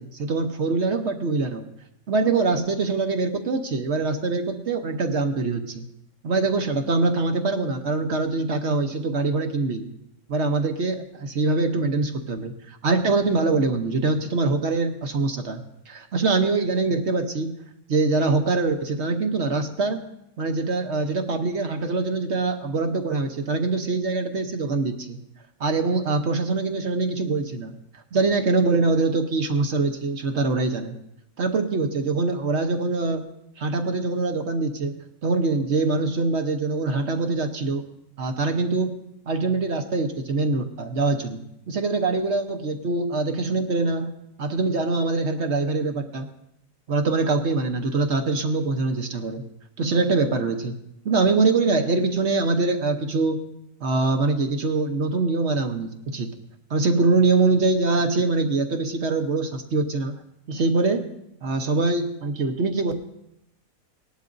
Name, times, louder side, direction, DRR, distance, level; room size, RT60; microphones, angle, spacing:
voice 1, 0.0-1.7 2.1-5.8 6.2-9.9 10.3-17.5 17.9-20.0 20.4-25.2 25.6-27.7 28.1-30.9 31.4-33.2 33.6-34.9 35.2-37.8 38.2-39.0 39.3-44.1 44.4-46.3 46.9-49.4 49.8-50.7 51.0-53.4 53.8-56.3 56.7-60.1 60.5-61.1 61.4-62.9, right 3 dB, 55° right, 5 dB, 1.1 m, -23 dB
19.0 x 11.5 x 2.6 m, 0.81 s
omnidirectional pair, 1.6 m